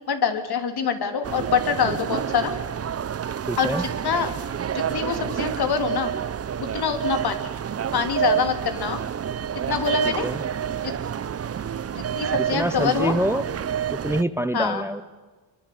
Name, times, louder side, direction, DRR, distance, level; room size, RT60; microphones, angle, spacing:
voice 1, 0.1-2.5 3.6-4.3 4.7-6.1 6.7-7.4 7.9-9.0 9.7-10.3 10.8-10.9 12.1-13.1 14.5-14.8, left 6 dB, 60° left, 7 dB, 3.2 m, -25 dB
sound 1, 1.2-14.2, right 9 dB, 35° right, 0.7 m, -28 dB
voice 2, 3.5-3.9 10.0-10.4 12.3-13.5 13.9-15.0, right 1 dB, 5° right, 13 dB, 0.8 m, -26 dB
24.0 x 24.0 x 8.5 m, 1.3 s
cardioid pair, 135°, 44 cm